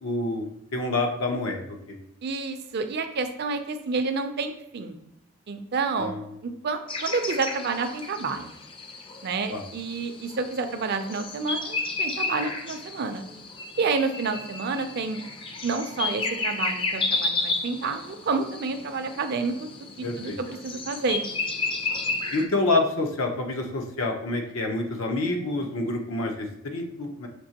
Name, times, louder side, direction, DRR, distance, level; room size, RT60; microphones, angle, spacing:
voice 1, 0.0-2.0 6.0-6.2 9.5-9.6 20.0-20.4 22.3-27.3, left 2 dB, 85° left, 3 dB, 0.7 m, -28 dB
voice 2, 2.2-5.0 5.5-6.2 6.4-8.5 9.2-13.2 13.8-15.2 15.6-19.7 20.2-21.2, right 4 dB, 50° right, 7 dB, 0.4 m, -29 dB
sound 1, 6.9-22.5, left 3 dB, 25° left, 0.4 m, -32 dB
6.0 x 2.8 x 2.8 m, 0.83 s
head